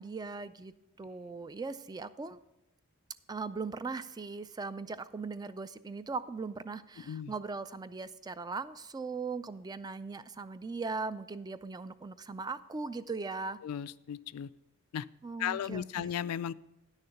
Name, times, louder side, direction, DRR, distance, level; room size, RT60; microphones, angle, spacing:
voice 1, 0.0-2.4 3.3-13.6 15.2-16.1, right 4 dB, 15° right, 14 dB, 0.3 m, -39 dB
voice 2, 7.0-7.3 13.6-14.5 14.9-15.1 15.4-16.5, left 9 dB, 75° left, 17 dB, 0.3 m, -35 dB
9.9 x 6.5 x 5.7 m, 0.94 s
head